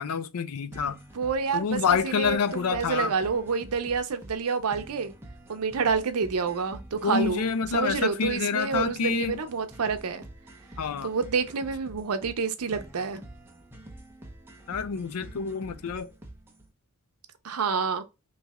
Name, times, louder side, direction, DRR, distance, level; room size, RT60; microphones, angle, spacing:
voice 1, 0.0-1.0 1.5-3.1 7.0-9.4 10.8-11.1 14.7-16.1, left 6 dB, 85° left, 0.5 m, -27 dB
sound 1, 0.7-16.7, right 1 dB, 10° right, 0.6 m, -47 dB
voice 2, 1.1-5.1 5.5-7.4 7.7-10.2 11.0-13.2 17.4-18.0, right 5 dB, 85° right, 0.6 m, -28 dB
3.2 x 2.7 x 3.4 m
head